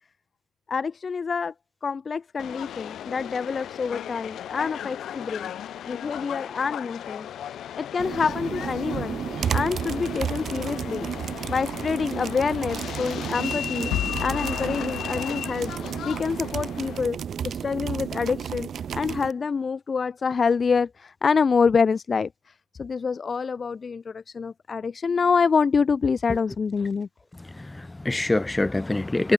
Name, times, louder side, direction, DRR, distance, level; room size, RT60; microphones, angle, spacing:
voice 1, 0.7-1.5 1.8-5.5 5.9-7.3 7.8-9.2 9.5-11.1 11.5-13.9 14.2-15.7 16.0-17.2 17.4-22.3 22.8-27.1, left 5 dB, 30° left, 0.4 m, -26 dB
Subway metro underground, 2.4-17.0, left 10 dB, 60° left, 2.9 m, -36 dB
sound 1, 8.0-19.3, right 8 dB, 45° right, 1.1 m, -32 dB
sound 2, 13.9-15.9, left 14 dB, 80° left, 2.1 m, -34 dB
voice 2, 27.4-29.3, left 2 dB, 10° left, 1.4 m, -25 dB
cardioid pair, 135°, 0 cm